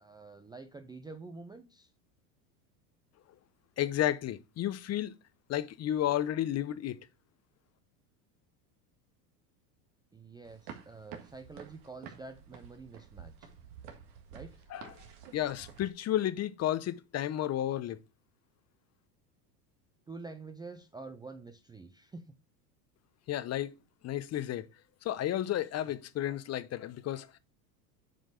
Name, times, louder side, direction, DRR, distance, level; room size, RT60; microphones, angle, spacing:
voice 1, 0.0-1.9 10.1-13.5 14.3-14.6 20.1-22.3, right 3 dB, 10° right, 0.5 m, -47 dB
voice 2, 3.8-5.1 5.5-7.0 14.7-14.9 15.3-18.0 23.3-23.7 24.0-24.7 25.0-27.4, left 12 dB, 35° left, 0.7 m, -32 dB
sound 1, 10.4-15.9, right 8 dB, 55° right, 1.8 m, -50 dB
7.7 x 5.2 x 5.0 m
hypercardioid pair, 100°, 47 cm